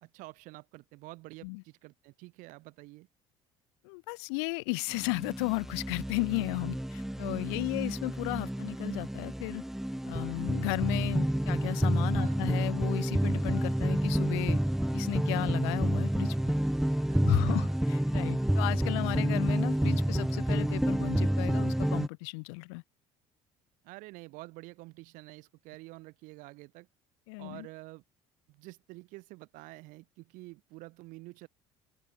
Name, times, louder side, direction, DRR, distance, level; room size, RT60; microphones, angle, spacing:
voice 1, 0.0-3.1 12.2-12.4 17.1-17.8 23.8-26.9 27.4-28.0 28.5-31.5, right 23 dB, 75° right, 2.4 m, -48 dB
voice 2, 3.8-9.6 10.1-14.6 14.9-16.5 17.2-22.8 27.3-27.7, left 33 dB, 80° left, 2.1 m, -34 dB
sound 1, 4.9-22.1, right 1 dB, 5° right, 0.6 m, -29 dB
open air
hypercardioid pair, 70°, 14 cm